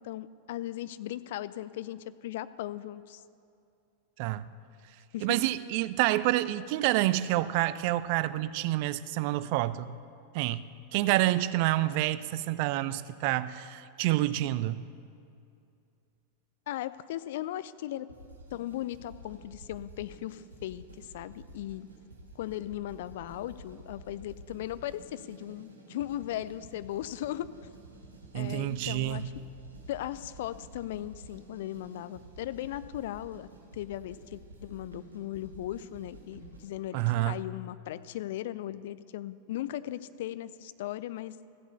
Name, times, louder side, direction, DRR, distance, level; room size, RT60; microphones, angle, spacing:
voice 1, 0.0-3.2 5.1-5.4 16.7-18.1 18.5-21.9 22.4-27.5 28.3-29.3 29.9-33.5 33.7-41.4, left 13 dB, 55° left, 15 dB, 0.4 m, -37 dB
voice 2, 4.2-4.5 5.2-9.9 10.3-10.6 10.9-14.8 28.3-29.2 36.9-37.4, right 16 dB, 45° right, 15 dB, 0.4 m, -28 dB
sound 1, 18.1-36.8, right 1 dB, 75° right, 2.3 m, -51 dB
14.0 x 8.1 x 6.8 m, 2.5 s
figure-of-eight pair, 90°, 0 cm